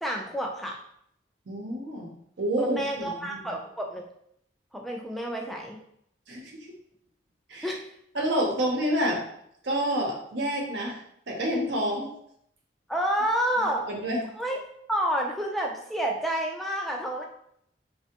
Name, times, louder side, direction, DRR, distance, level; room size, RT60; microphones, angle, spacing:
voice 1, 0.0-0.8 2.6-4.1 4.7-5.8 7.6-7.8 12.9-13.9 14.4-14.6 14.9-17.2, right 1 dB, ahead, 0 dB, 0.3 m, -29 dB
voice 2, 1.5-3.4 6.3-6.6 7.5-7.7 8.1-9.2 9.6-11.0 11.3-12.1 13.9-14.2, equal, 70° right, -1 dB, 0.6 m, -28 dB
3.2 x 2.1 x 2.8 m, 0.71 s
head